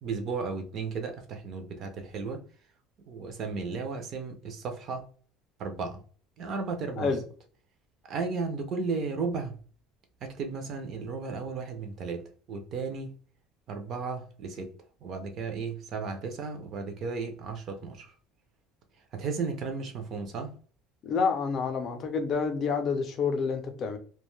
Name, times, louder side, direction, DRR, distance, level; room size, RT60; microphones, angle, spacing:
voice 1, 0.0-2.4 3.1-5.1 5.6-6.0 6.4-7.2 8.1-9.6 10.2-12.2 12.5-13.1 13.7-14.7 15.0-18.1 19.1-20.5, right 4 dB, 35° right, 0.4 m, -34 dB
voice 2, 21.0-24.0, left 5 dB, 30° left, 0.4 m, -28 dB
2.4 x 2.2 x 3.1 m
cardioid pair, 175°, 0 cm